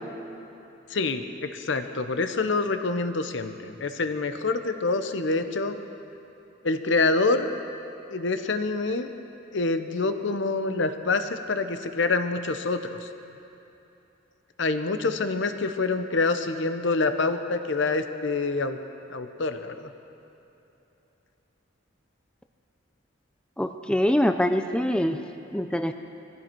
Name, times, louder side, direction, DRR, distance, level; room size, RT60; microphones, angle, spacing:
voice 1, 0.9-5.7 6.6-7.5 8.1-9.1 9.5-13.1 14.6-18.8 19.1-19.9, left 3 dB, 65° left, 8 dB, 0.8 m, -26 dB
voice 2, 23.6-25.2 25.5-25.9, left 1 dB, 5° left, 7 dB, 0.4 m, -24 dB
20.5 x 15.5 x 4.6 m, 2.9 s
head